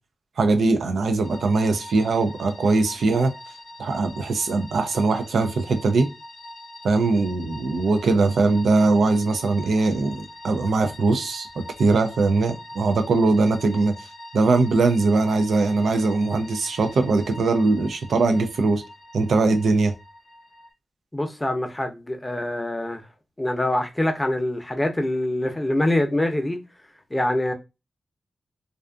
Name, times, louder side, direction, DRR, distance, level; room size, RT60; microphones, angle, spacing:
voice 1, 0.4-3.3 3.8-6.1 6.8-11.5 11.8-13.9 14.3-18.8 19.1-19.9, right 3 dB, 80° right, 0.4 m, -21 dB
sound 1, 1.2-20.7, left 1 dB, 80° left, 0.6 m, -43 dB
voice 2, 21.1-23.0 23.4-26.6 27.1-27.5, left 1 dB, 20° left, 0.6 m, -24 dB
2.4 x 2.4 x 2.3 m
cardioid pair, 45°, 0 cm